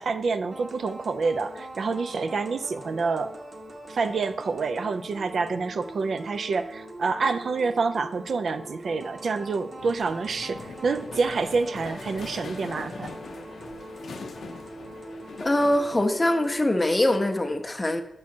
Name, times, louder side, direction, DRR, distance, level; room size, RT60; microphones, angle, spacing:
voice 1, 0.0-3.3 3.9-13.1, right 4 dB, 70° right, 10 dB, 0.3 m, -27 dB
sound 1, 0.5-17.5, right 1 dB, 45° right, 0.9 m, -42 dB
sound 2, 9.8-16.1, left 4 dB, 80° left, 0.4 m, -42 dB
voice 2, 15.4-18.0, left 1 dB, 20° left, 7 dB, 0.5 m, -23 dB
6.0 x 4.7 x 4.3 m, 0.82 s
wide cardioid pair, 150°, 0 cm